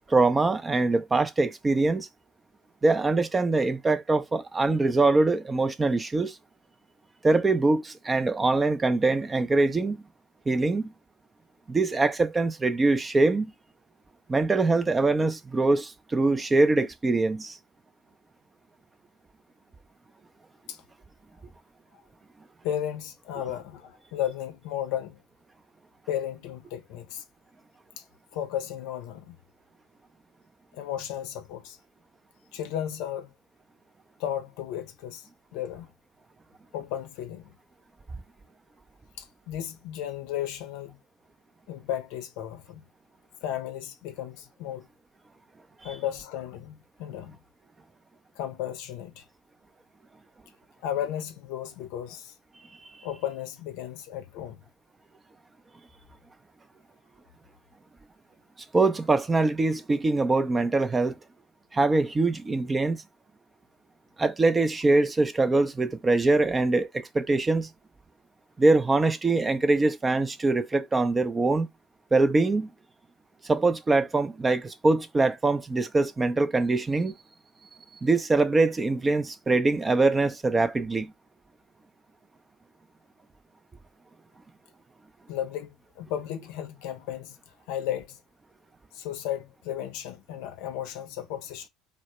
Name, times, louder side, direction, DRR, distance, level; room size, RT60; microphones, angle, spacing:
voice 1, 0.1-2.1 2.8-6.4 7.2-10.0 10.5-10.9 11.7-13.5 14.3-17.6 58.7-61.2 61.7-63.0 64.2-67.7 68.6-71.7 72.1-72.7 73.4-77.1 78.0-81.1, right 3 dB, 20° right, 0.4 m, -23 dB
voice 2, 22.6-25.2 26.1-27.2 28.0-28.1 28.3-29.4 30.7-31.8 32.5-33.3 34.2-35.9 36.7-37.5 39.2-41.0 41.7-42.9 43.4-44.9 45.8-47.4 48.4-49.2 50.8-52.3 53.0-54.6 85.3-87.4 87.7-88.2 88.9-91.7, left 11 dB, 65° left, 0.5 m, -34 dB
2.1 x 2.0 x 2.9 m
hypercardioid pair, 75°, 0 cm